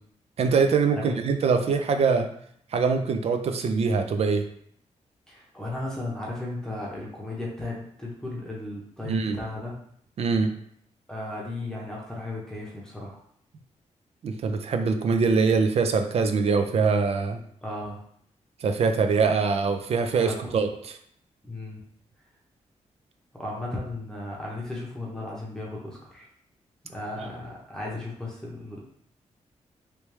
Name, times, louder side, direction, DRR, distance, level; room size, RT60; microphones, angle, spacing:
voice 1, 0.4-2.3 2.7-4.4 9.0-9.4 10.2-10.5 14.2-17.4 18.6-20.7, right 5 dB, 55° right, 7 dB, 0.4 m, -23 dB
voice 2, 5.3-9.7 11.1-13.2 17.6-18.0 20.2-20.7 21.4-21.8 23.3-26.3 26.8-28.8, left 2 dB, 5° left, -4 dB, 0.8 m, -35 dB
3.3 x 3.0 x 3.2 m, 0.67 s
wide cardioid pair, 145°, 12 cm